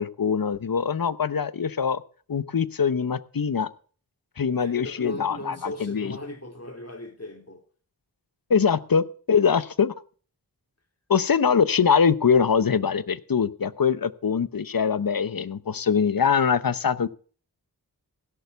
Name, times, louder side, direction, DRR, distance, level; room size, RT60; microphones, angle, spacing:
voice 1, 0.0-2.0 2.3-3.7 4.4-6.2 8.5-9.9 11.1-17.1, left 6 dB, 60° left, 0.8 m, -23 dB
voice 2, 4.6-7.6, left 1 dB, 40° left, 2.7 m, -37 dB
16.5 x 6.8 x 6.8 m
wide cardioid pair, 45°, 40 cm